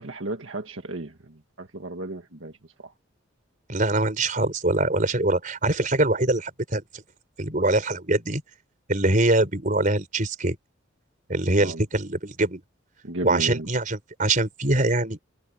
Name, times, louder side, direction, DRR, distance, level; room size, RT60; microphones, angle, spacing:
voice 1, 0.0-2.5 2.8-2.9 11.6-11.8 13.0-13.7, right 2 dB, 75° right, 1.8 m, -34 dB
voice 2, 3.7-7.0 7.4-8.4 8.9-10.6 11.3-12.6 13.2-15.2, right 2 dB, 40° right, 4.6 m, -23 dB
head